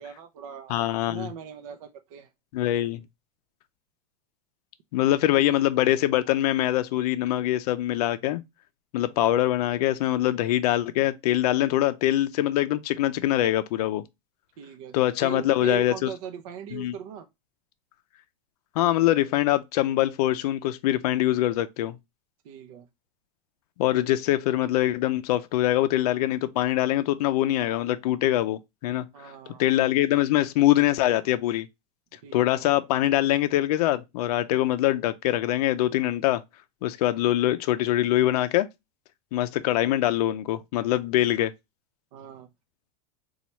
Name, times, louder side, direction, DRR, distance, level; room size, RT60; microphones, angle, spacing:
voice 1, 0.0-2.3 5.3-5.8 14.6-15.0 15.2-17.3 22.4-22.9 29.1-29.6 32.2-32.6 42.1-42.5, right 8 dB, 60° right, 0.5 m, -39 dB
voice 2, 0.7-1.3 2.5-3.0 4.9-8.4 8.9-14.0 14.9-16.1 16.7-16.9 18.8-22.0 23.8-29.0 29.6-31.7 32.3-36.4 36.8-38.7 39.3-41.5, left 14 dB, 70° left, 0.4 m, -23 dB
4.2 x 2.3 x 2.8 m
supercardioid pair, 165°, 20 cm